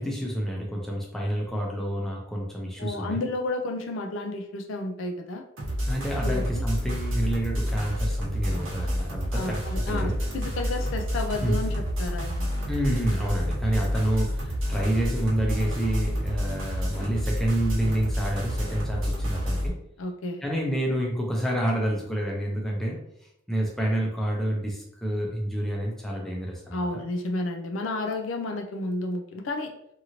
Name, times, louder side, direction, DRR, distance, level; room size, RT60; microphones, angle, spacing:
voice 1, 0.0-3.2 5.9-10.2 11.4-11.6 12.7-19.7 20.4-23.0 23.5-27.0, right 1 dB, ahead, -2 dB, 0.5 m, -28 dB
voice 2, 2.8-5.4 6.2-6.6 9.3-12.5 20.0-20.4 26.7-29.7, left 2 dB, 80° left, 4 dB, 0.4 m, -31 dB
sound 1, 5.6-19.7, equal, 90° right, 0.9 m, -29 dB
2.8 x 2.5 x 2.9 m, 0.80 s
head